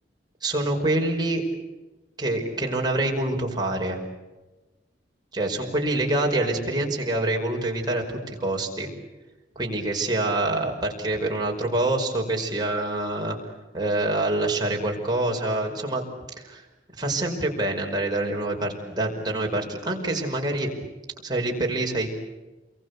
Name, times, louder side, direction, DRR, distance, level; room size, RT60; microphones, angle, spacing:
voice 1, 0.4-1.4 2.2-4.0 5.3-8.9 9.6-13.4 13.7-16.0 16.4-16.6 17.0-20.7 21.2-22.1, right 2 dB, 25° right, 0 dB, 5.3 m, -26 dB
28.5 x 23.0 x 8.3 m, 1.1 s
head